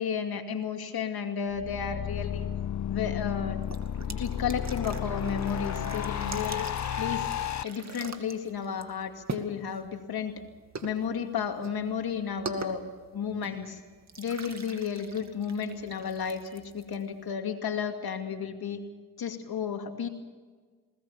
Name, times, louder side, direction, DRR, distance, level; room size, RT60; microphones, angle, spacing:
voice 1, 0.0-2.5 2.9-3.6 4.0-6.7 7.0-7.3 7.6-10.4 10.8-12.8 13.1-13.8 14.2-18.8 19.2-20.1, left 7 dB, 70° left, 5 dB, 2.5 m, -33 dB
sound 1, 1.5-7.6, left 9 dB, 50° left, 0.6 m, -32 dB
sound 2, 3.6-17.3, right 4 dB, 45° right, 2.3 m, -44 dB
21.0 x 18.5 x 7.2 m, 1.5 s
cardioid pair, 55°, 38 cm